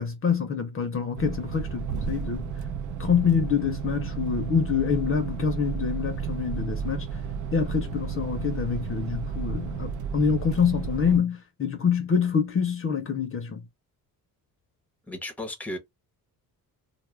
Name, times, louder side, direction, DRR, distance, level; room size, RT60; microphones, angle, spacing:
voice 1, 0.0-2.4 3.0-7.1 7.5-13.6, left 6 dB, 35° left, 0.6 m, -26 dB
sound 1, 1.1-11.2, right 6 dB, 55° right, 0.5 m, -32 dB
voice 2, 15.1-15.8, left 1 dB, 5° left, 0.8 m, -34 dB
2.3 x 2.0 x 3.1 m
cardioid pair, 110°, 37 cm